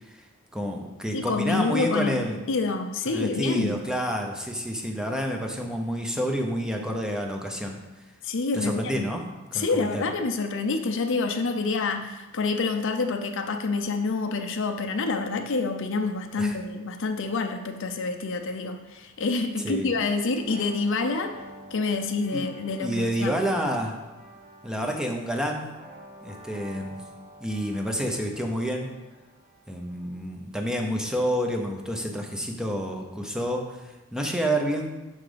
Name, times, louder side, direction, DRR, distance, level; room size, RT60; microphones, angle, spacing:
voice 1, 0.5-2.4 3.1-7.8 8.5-9.2 9.5-10.0 16.4-16.6 19.6-19.9 22.3-22.4 22.8-24.0 24.6-25.7 26.2-27.0 27.4-28.9 29.7-34.9, equal, 5° right, 2 dB, 0.8 m, -29 dB
voice 2, 1.1-2.2 2.5-3.7 8.2-9.0 9.5-21.3 21.7-23.4, left 3 dB, 60° left, 6 dB, 0.6 m, -27 dB
sound 1, 20.4-30.0, right 1 dB, 30° right, 1.0 m, -49 dB
6.3 x 5.8 x 5.1 m, 1.1 s
head